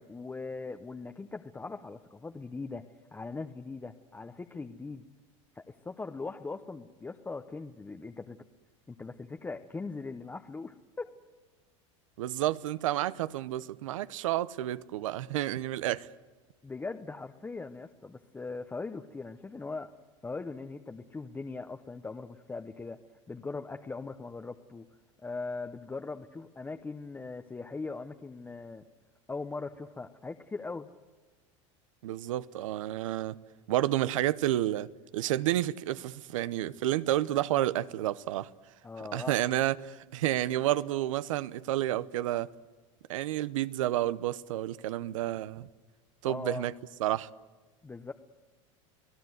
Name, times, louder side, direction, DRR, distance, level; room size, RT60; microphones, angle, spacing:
voice 1, 0.0-2.9 3.1-5.1 5.5-8.4 8.9-11.1 16.6-19.9 20.2-23.0 23.3-24.8 25.2-28.8 29.3-30.9 38.8-39.3 46.2-46.7 47.8-48.1, left 3 dB, 10° left, 0.8 m, -40 dB
voice 2, 12.2-16.1 32.0-33.4 33.7-38.5 39.1-42.5 43.1-45.7 46.2-46.7 47.0-47.3, right 14 dB, 90° right, 0.9 m, -30 dB
30.0 x 17.5 x 7.9 m
supercardioid pair, 125°, 16 cm